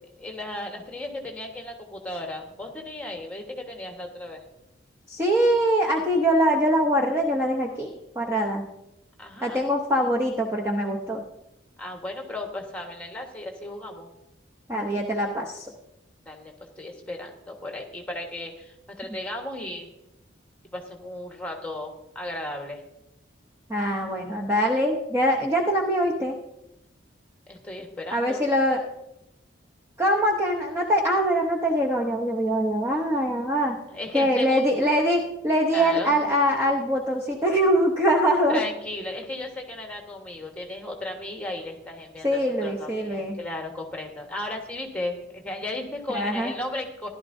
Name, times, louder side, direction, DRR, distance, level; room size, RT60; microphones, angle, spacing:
voice 1, 0.2-4.4 9.2-9.6 11.8-14.1 16.2-19.9 20.7-22.8 27.5-28.4 33.9-34.6 35.7-36.1 38.5-47.1, left 1 dB, 5° left, 2 dB, 1.4 m, -35 dB
voice 2, 5.1-8.6 9.4-11.2 14.7-15.7 23.7-26.4 28.1-28.8 30.0-33.8 34.1-38.6 42.2-43.4 46.1-46.5, equal, 15° right, -1 dB, 0.8 m, -23 dB
15.5 x 11.5 x 2.7 m, 0.88 s
head